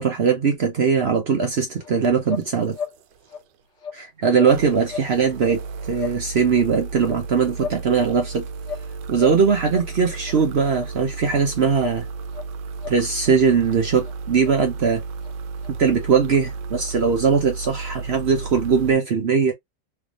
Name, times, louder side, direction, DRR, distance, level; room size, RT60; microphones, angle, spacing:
voice 1, 0.0-2.8 4.0-5.6 5.9-8.5 9.1-12.1 12.9-15.0 15.7-19.5, right 6 dB, 50° right, 0.8 m, -20 dB
sound 1, 1.4-1.6 2.0-3.6 4.4-19.0, right 4 dB, 90° right, 1.2 m, -34 dB
sound 2, 1.8-1.9 2.2-2.5 2.7-3.0 3.2-3.4 3.7-4.0 4.3-4.5 4.8-5.1 5.4-5.6 5.9-6.2 6.5-6.6 7.0-7.8 8.1-8.9 9.1-9.4 9.6-9.9 10.2-10.3 10.7-10.9 11.2-11.4 11.7-12.0 12.3-12.5 12.8-13.3 13.6-13.7 14.0-14.1 14.4-14.5 14.8-14.9 15.2-15.3 15.6-15.7 16.0-16.1 16.4-16.5 16.8-16.9 17.2-17.3 17.6-17.7, left 6 dB, 50° left, 1.3 m, -35 dB
3.5 x 3.2 x 2.4 m
omnidirectional pair, 1.8 m